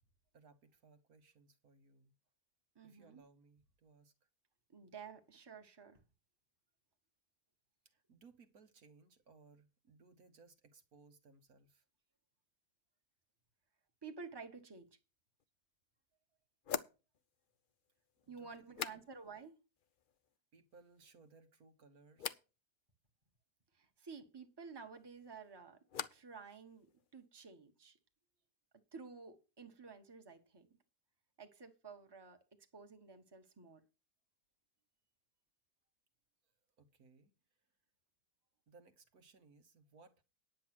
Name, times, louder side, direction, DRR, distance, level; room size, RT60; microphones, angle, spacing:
voice 1, 0.3-2.1 2.8-4.1 7.8-11.8 18.3-19.0 20.5-22.4 36.8-37.3 38.7-40.2, right 4 dB, 60° right, 1.6 m, -64 dB
voice 2, 2.7-3.2 4.7-6.0 14.0-14.9 18.3-19.6 23.7-25.8 26.1-26.9 27.1-28.0 28.9-30.7 31.4-32.4 32.7-33.8, right 5 dB, 15° right, 1.4 m, -52 dB
sound 1, 15.4-15.5 16.6-19.5 19.8-20.4 20.7-21.3 22.2-22.5 24.9-26.4 26.7-27.3, left 8 dB, 90° left, 0.4 m, -47 dB
10.5 x 7.4 x 6.1 m
omnidirectional pair, 1.8 m